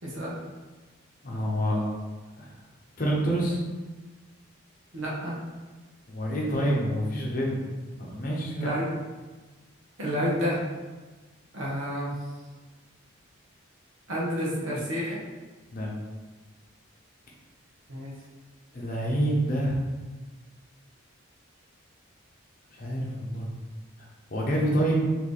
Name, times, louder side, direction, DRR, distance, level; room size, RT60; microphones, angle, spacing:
voice 1, 0.0-0.4 4.9-5.4 8.5-9.0 10.0-10.7 11.5-12.2 14.1-15.2 17.9-18.1, equal, 75° right, -5 dB, 1.2 m, -29 dB
voice 2, 1.2-1.9 2.4-2.6 3.0-3.6 6.1-7.6 8.0-8.8 15.7-15.9 18.7-19.8 22.7-23.5 24.3-25.1, right 1 dB, 40° left, -3 dB, 0.9 m, -27 dB
4.3 x 3.3 x 3.3 m, 1.3 s
head